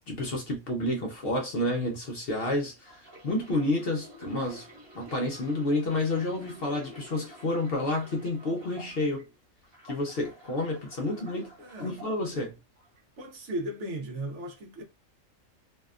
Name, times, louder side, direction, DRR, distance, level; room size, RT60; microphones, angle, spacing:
voice 1, 0.1-4.7 4.9-9.3 9.8-11.5 11.8-12.6, left 1 dB, 55° left, 0.8 m, -30 dB
sound 1, 2.7-9.2 9.6-12.1 12.8-13.0, equal, 45° right, 1.2 m, -50 dB
voice 2, 11.6-12.0 12.3-12.5 13.2-14.8, right 1 dB, 65° right, 1.0 m, -37 dB
2.7 x 2.2 x 2.4 m
omnidirectional pair, 1.4 m